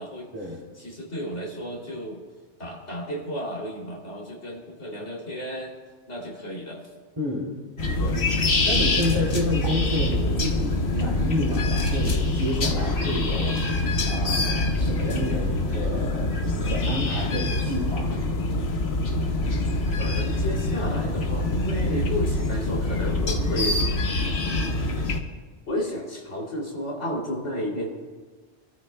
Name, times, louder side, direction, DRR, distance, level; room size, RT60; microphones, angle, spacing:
voice 1, 0.8-2.2 2.6-5.8 6.1-6.8 20.0-23.8 24.5-25.0 25.7-27.9, equal, 90° left, -2 dB, 3.2 m, -32 dB
voice 2, 7.2-7.5 7.9-8.2 8.6-13.6 14.1-18.2, left 1 dB, 25° right, -5 dB, 2.7 m, -30 dB
sound 1, 7.8-25.2, left 2 dB, 65° left, 1.4 m, -25 dB
29.5 x 13.5 x 2.2 m, 1.4 s
omnidirectional pair, 1.2 m